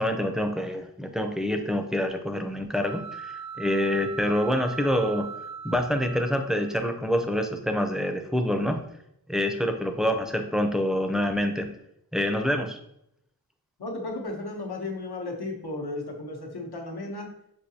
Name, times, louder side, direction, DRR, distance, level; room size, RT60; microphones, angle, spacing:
voice 1, 0.0-5.3 5.6-8.8 9.3-11.7 12.1-12.8, left 1 dB, ahead, 5 dB, 0.5 m, -26 dB
sound 1, 2.8-6.9, right 6 dB, 50° right, 0.6 m, -40 dB
voice 2, 13.8-17.3, left 2 dB, 85° left, 1 dB, 0.9 m, -34 dB
6.0 x 2.7 x 2.7 m, 0.78 s
wide cardioid pair, 65°, 38 cm